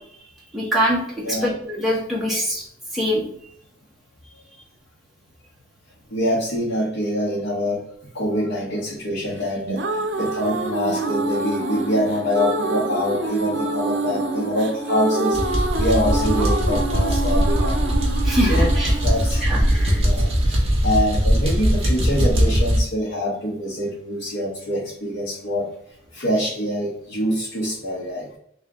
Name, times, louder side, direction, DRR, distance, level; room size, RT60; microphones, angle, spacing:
voice 1, 0.5-1.0 1.3-2.6 2.9-3.2 18.2-18.9 19.4-20.0, equal, ahead, -6 dB, 1.2 m, -23 dB
voice 2, 1.2-1.6 6.1-7.8 8.1-17.8 18.5-19.6 19.9-25.7 26.1-28.4, equal, 70° left, -5 dB, 0.9 m, -25 dB
sound 1, 9.4-20.5, right 2 dB, 70° right, 0.5 m, -27 dB
sound 2, 15.3-22.8, equal, 30° right, 1.0 m, -20 dB
3.2 x 2.8 x 3.6 m, 0.71 s
head